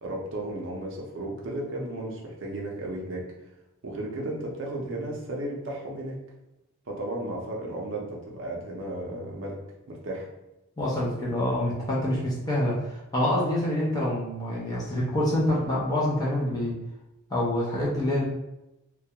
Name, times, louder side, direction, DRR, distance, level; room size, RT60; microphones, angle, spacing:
voice 1, 0.0-3.3 3.8-6.2 6.9-9.6 9.9-10.3, right 1 dB, 55° right, -2 dB, 0.5 m, -34 dB
voice 2, 10.8-16.7 17.3-18.2, left 1 dB, 15° left, -5 dB, 0.5 m, -26 dB
2.3 x 2.2 x 2.8 m, 0.91 s
head